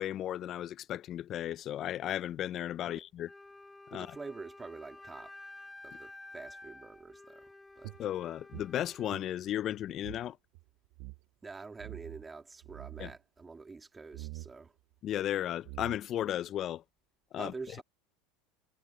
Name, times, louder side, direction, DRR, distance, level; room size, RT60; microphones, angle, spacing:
voice 1, 0.0-3.3 3.9-4.1 8.0-10.4 13.0-13.1 15.0-16.8 17.3-17.5, left 12 dB, 45° left, 0.7 m, -35 dB
Wind instrument woodwind instrument, 3.2-9.1, left 2 dB, 10° left, 1.8 m, -51 dB
voice 2, 3.9-5.4 5.8-7.5 7.8-7.9 11.4-14.8 17.4-17.8, right 4 dB, 20° right, 2.2 m, -46 dB
sound 1, 7.8-10.3 10.5-10.6 10.9-11.2 11.8-12.3 12.6-13.2 14.1-14.5 15.3-15.4 15.6-16.3, right 23 dB, 65° right, 1.8 m, -45 dB
hypercardioid pair, 95°, 0 cm